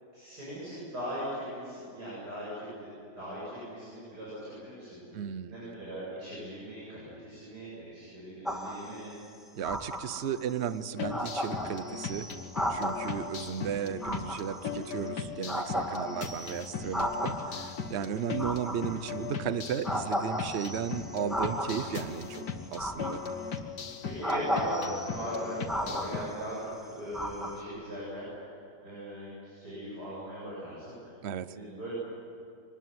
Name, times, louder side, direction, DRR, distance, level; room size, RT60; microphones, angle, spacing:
voice 1, 0.1-2.9 3.1-9.2 24.0-31.2 31.5-31.9, equal, 70° right, -8 dB, 8.7 m, -39 dB
voice 2, 5.1-5.5 9.5-12.3 12.7-23.2 31.2-31.6, right 8 dB, 50° right, 14 dB, 0.9 m, -35 dB
sound 1, 8.4-9.0 9.6-10.4 10.8-10.9 11.1-13.3 14.0-15.1 15.5-17.6 18.3-19.3 19.8-22.0 22.8-23.6 24.2-26.6 27.1-27.6, equal, ahead, 2.3 m, -35 dB
sound 2, 11.0-26.3, left 6 dB, 80° left, 2.0 m, -38 dB
24.5 x 20.0 x 9.5 m, 2.7 s
omnidirectional pair, 1.8 m